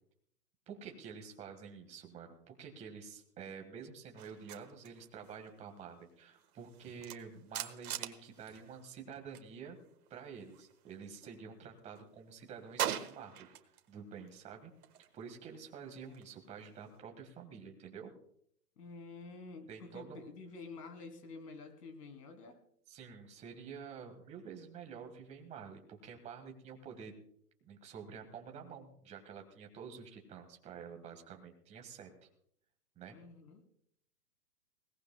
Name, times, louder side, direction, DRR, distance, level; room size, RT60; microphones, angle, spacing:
voice 1, 0.7-9.8 10.1-13.5 13.9-14.7 15.1-18.1 19.7-20.2 22.9-27.1 27.6-32.3 32.9-33.2, right 6 dB, 15° right, 3 dB, 1.6 m, -49 dB
sound 1, 4.2-9.5 9.8-11.4 11.8-13.9 14.2-17.0, right 10 dB, 65° right, 1.5 m, -44 dB
voice 2, 18.8-22.6 33.1-33.6, left 3 dB, 75° left, 6 dB, 3.2 m, -49 dB
21.0 x 18.0 x 2.2 m, 0.70 s
hypercardioid pair, 155°, 48 cm